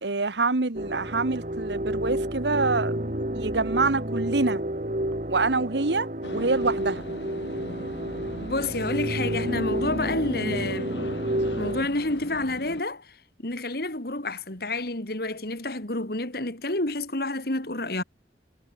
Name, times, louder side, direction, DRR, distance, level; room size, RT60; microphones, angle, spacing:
voice 1, 0.0-3.0 3.3-4.6 5.3-7.0, right 3 dB, 75° right, 1.3 m, -26 dB
sound 1, 0.7-11.8, right 1 dB, 45° right, 3.3 m, -30 dB
sound 2, 6.2-12.8, left 1 dB, 80° left, 3.6 m, -41 dB
voice 2, 8.4-11.0 11.6-13.2 13.4-18.0, left 2 dB, 55° left, 2.9 m, -29 dB
head